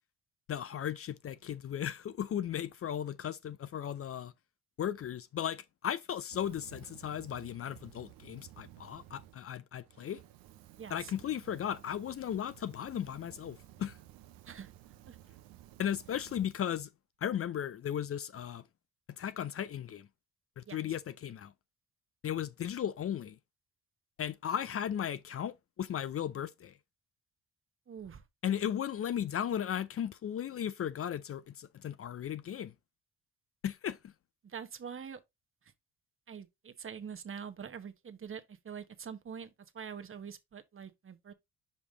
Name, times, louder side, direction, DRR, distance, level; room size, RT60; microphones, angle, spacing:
voice 1, 0.5-4.3 4.8-10.2 10.9-14.0 15.8-16.9 17.2-18.6 19.1-20.1 20.6-21.5 22.2-23.4 24.2-26.8 28.4-32.7 33.6-34.1, left 9 dB, 45° left, 0.5 m, -36 dB
Fire, 6.2-9.4 9.8-16.8, right 13 dB, 80° right, 0.7 m, -55 dB
voice 2, 10.8-11.1 14.5-14.7 15.1-15.2 20.7-20.8 27.9-28.2 34.4-35.2 36.3-39.5 39.7-41.3, right 7 dB, 40° right, 1.0 m, -44 dB
5.3 x 5.0 x 3.9 m
supercardioid pair, 65°, 34 cm